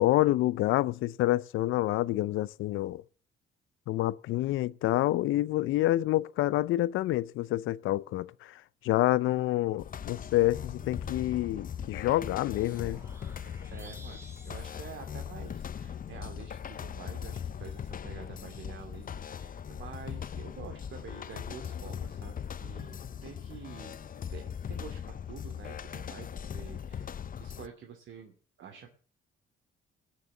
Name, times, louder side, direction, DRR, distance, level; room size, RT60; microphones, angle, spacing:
voice 1, 0.0-3.0 3.9-13.0, left 16 dB, 90° left, 0.6 m, -28 dB
sound 1, 9.8-27.7, left 8 dB, 45° left, 0.9 m, -40 dB
sound 2, 10.0-15.8, right 2 dB, 15° right, 2.0 m, -55 dB
voice 2, 13.7-23.9 24.3-28.9, right 7 dB, 70° right, 2.6 m, -48 dB
19.0 x 6.8 x 7.6 m
cardioid pair, 90°, 20 cm